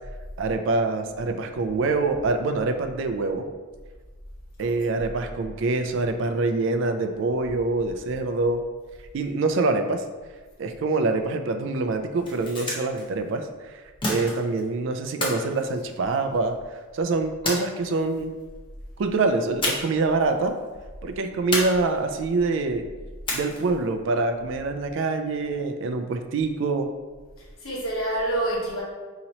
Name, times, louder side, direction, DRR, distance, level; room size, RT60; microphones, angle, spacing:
voice 1, 0.4-3.5 4.6-8.6 9.1-10.0 10.6-13.8 14.1-16.5 16.9-18.4 19.0-20.5 21.0-22.9 23.3-26.9, right 3 dB, 60° right, 7 dB, 0.3 m, -25 dB
sound 1, 12.0-13.0 14.0-14.7 15.2-16.5 17.4-18.2 19.6-20.1 20.3-20.5 21.5-22.2 23.3-23.8, left 2 dB, 25° left, 0.6 m, -30 dB
voice 2, 27.4-28.8, right 1 dB, 70° left, -4 dB, 1.1 m, -28 dB
2.9 x 2.8 x 4.0 m, 1.3 s
head